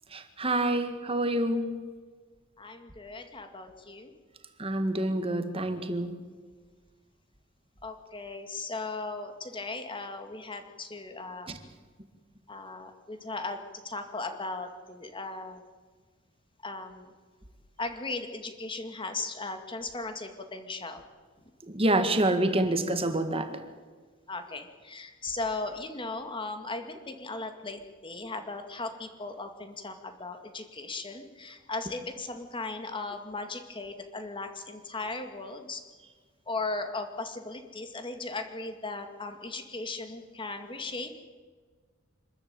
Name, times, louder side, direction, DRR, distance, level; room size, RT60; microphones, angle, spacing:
voice 1, 0.1-1.8 4.6-6.2 21.7-23.6, right 1 dB, 30° right, 8 dB, 1.9 m, -27 dB
voice 2, 2.6-4.1 7.8-11.5 12.5-15.6 16.6-17.1 17.8-21.0 22.7-22.8 24.3-35.8 36.5-41.1, left 3 dB, 25° left, 7 dB, 2.2 m, -37 dB
26.0 x 13.5 x 8.9 m, 1.5 s
head